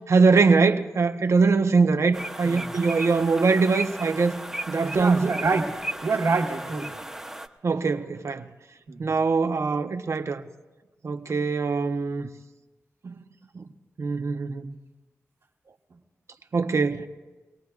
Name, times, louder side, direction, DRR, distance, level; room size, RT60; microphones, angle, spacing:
voice 1, 0.1-4.3 4.7-5.4 7.6-8.4 9.0-10.4 11.0-12.3 13.0-13.1 13.5-13.6 14.0-14.7 16.5-17.1, right 4 dB, 60° right, 0.8 m, -22 dB
sound 1, 2.1-7.5, right 1 dB, 5° right, 0.9 m, -36 dB
voice 2, 4.9-5.7 6.0-6.9 8.9-9.1, right 4 dB, 85° right, 1.6 m, -26 dB
24.5 x 18.0 x 2.4 m
cardioid pair, 55°, 6 cm